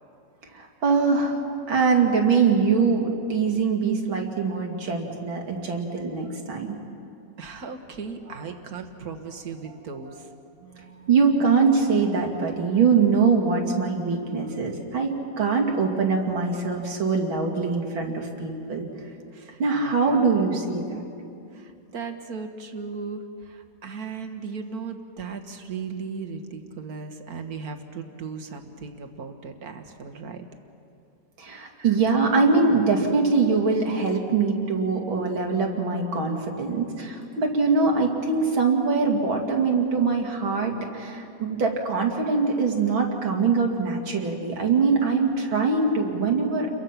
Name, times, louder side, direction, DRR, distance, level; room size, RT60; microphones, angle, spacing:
voice 1, 0.4-1.4 1.7-6.8 8.4-8.5 10.6-18.9 19.6-21.0 31.4-46.7, right 4 dB, 90° right, 1 dB, 3.2 m, -23 dB
voice 2, 7.4-10.3 19.3-20.3 21.5-30.5 31.8-32.0, right 5 dB, 50° right, 6 dB, 1.9 m, -37 dB
29.5 x 23.0 x 5.9 m, 2.5 s
omnidirectional pair, 2.1 m